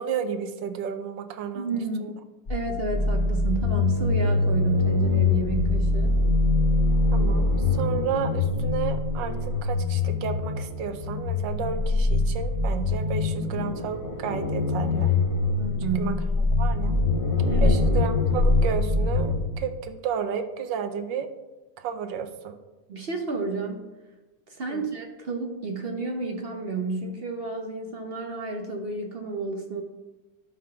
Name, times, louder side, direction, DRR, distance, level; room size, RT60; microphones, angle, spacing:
voice 1, 0.0-2.1 7.1-15.1 16.0-16.1 16.6-17.0 17.6-21.3 21.8-22.6 24.7-24.8, right 7 dB, 85° right, 8 dB, 1.4 m, -32 dB
voice 2, 1.5-2.0 2.5-6.2 15.6-16.2 17.4-18.0 22.9-23.8 24.5-29.8, right 3 dB, 55° right, 4 dB, 0.6 m, -31 dB
sound 1, 2.5-19.4, left 3 dB, 35° left, 1.1 m, -24 dB
11.5 x 3.9 x 5.7 m, 1.1 s
omnidirectional pair, 2.0 m